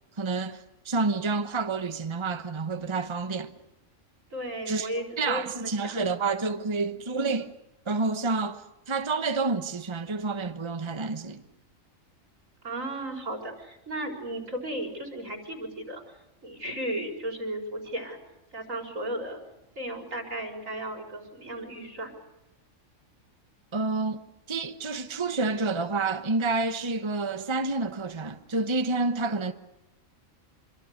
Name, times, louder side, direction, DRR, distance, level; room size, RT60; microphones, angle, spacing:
voice 1, 0.2-3.5 4.7-4.9 5.2-7.5 7.9-11.4 23.7-24.2 24.5-29.5, right 3 dB, 25° right, 1.1 m, -29 dB
voice 2, 4.3-6.0 12.6-16.0 16.4-18.2 18.5-19.4 19.8-22.2, right 1 dB, 75° right, 5.2 m, -35 dB
26.0 x 24.5 x 6.6 m
omnidirectional pair, 1.4 m